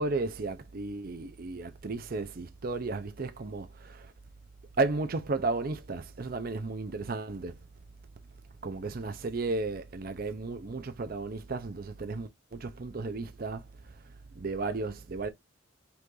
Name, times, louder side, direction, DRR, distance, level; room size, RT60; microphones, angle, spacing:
voice 1, 0.0-4.1 4.8-7.6 8.6-13.6 14.4-15.3, right 3 dB, 45° right, 0.5 m, -34 dB
5.6 x 2.5 x 3.7 m
head